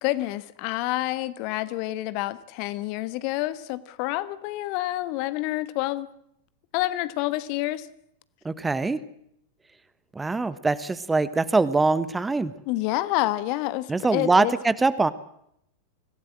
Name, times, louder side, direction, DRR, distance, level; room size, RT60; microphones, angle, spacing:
voice 1, 0.0-6.1 6.7-7.9 12.7-14.5, left 17 dB, 45° left, 15 dB, 1.3 m, -28 dB
voice 2, 8.4-9.0 10.1-12.5 13.9-15.1, right 3 dB, 10° right, 15 dB, 1.2 m, -23 dB
25.0 x 17.0 x 7.6 m, 0.74 s
figure-of-eight pair, 90°, 0 cm